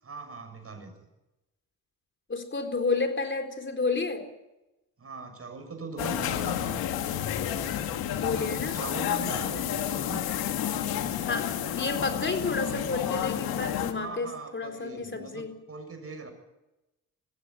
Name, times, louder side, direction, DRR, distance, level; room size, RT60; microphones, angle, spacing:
voice 1, 0.0-0.9 5.0-6.8 7.2-7.6 8.0-10.3 13.9-16.3, right 4 dB, 40° right, 6 dB, 6.7 m, -41 dB
voice 2, 2.3-4.2 8.2-8.8 9.0-9.2 11.2-14.3 14.5-15.5, left 3 dB, 35° left, 6 dB, 4.2 m, -30 dB
sound 1, 6.0-13.9, left 10 dB, 85° left, 1.8 m, -30 dB
20.5 x 15.5 x 8.9 m, 0.98 s
cardioid pair, 70°, 35 cm